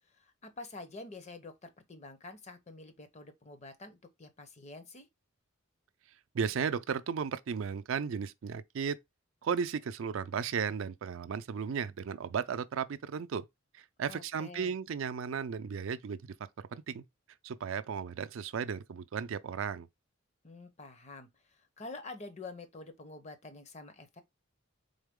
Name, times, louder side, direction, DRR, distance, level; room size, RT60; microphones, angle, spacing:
voice 1, 0.1-5.1 14.1-14.7 20.4-21.3 21.6-24.2, left 3 dB, 35° left, 0.7 m, -47 dB
voice 2, 6.3-9.0 9.4-13.5 13.7-16.3 16.7-17.0 17.4-19.9, right 6 dB, 70° right, 0.4 m, -35 dB
4.0 x 3.6 x 3.6 m
head